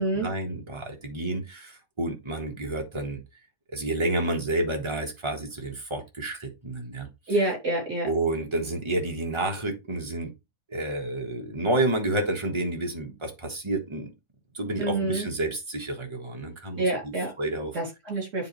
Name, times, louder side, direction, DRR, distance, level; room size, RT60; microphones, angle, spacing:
voice 1, 0.0-3.2 3.7-7.4 8.0-10.3 10.7-14.1 14.5-17.7, right 2 dB, 20° right, 2 dB, 1.4 m, -30 dB
voice 2, 7.3-8.1 14.8-15.3 16.8-17.3 17.7-18.5, right 2 dB, 45° right, 1 dB, 3.6 m, -27 dB
9.8 x 3.7 x 3.2 m, 0.23 s
omnidirectional pair, 1.8 m